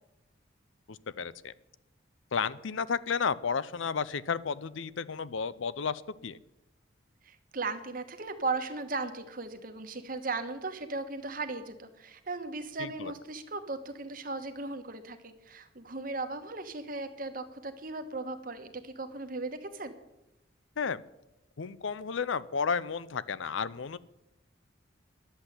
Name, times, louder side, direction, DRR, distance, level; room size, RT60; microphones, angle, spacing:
voice 1, 0.9-1.5 2.3-6.4 12.8-13.1 20.8-21.0 21.6-24.0, left 6 dB, 70° left, 18 dB, 0.6 m, -32 dB
voice 2, 7.2-19.9, right 3 dB, 45° right, 8 dB, 1.2 m, -37 dB
11.0 x 7.9 x 10.0 m, 0.93 s
head